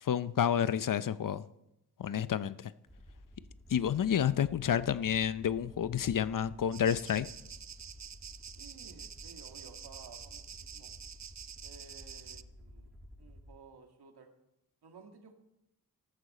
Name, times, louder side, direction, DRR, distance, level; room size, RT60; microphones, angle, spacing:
voice 1, 0.0-1.4 2.0-2.7 3.7-7.3, left 9 dB, 55° left, 0.6 m, -30 dB
Aircraft, 2.9-13.5, left 1 dB, ahead, 6.0 m, -53 dB
sound 1, 6.7-12.4, right 8 dB, 45° right, 0.6 m, -48 dB
voice 2, 8.6-10.9 11.6-12.9 13.2-14.3 14.8-15.3, right 5 dB, 75° right, 1.9 m, -55 dB
14.0 x 12.5 x 4.2 m
cardioid pair, 45°, 39 cm